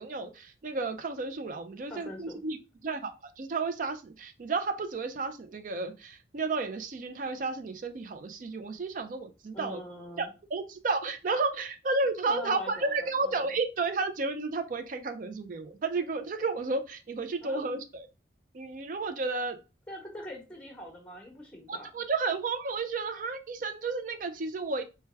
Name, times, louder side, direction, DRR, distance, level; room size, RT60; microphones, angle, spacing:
voice 1, 0.0-2.6 2.8-9.8 10.2-18.1 18.5-19.6 21.7-24.8, right 3 dB, 45° right, 8 dB, 0.4 m, -32 dB
voice 2, 1.9-2.4 9.5-10.3 11.4-11.5 12.3-13.5 17.4-17.7 19.9-21.9, equal, 5° left, 0 dB, 0.9 m, -43 dB
4.5 x 2.2 x 3.3 m, 0.30 s
head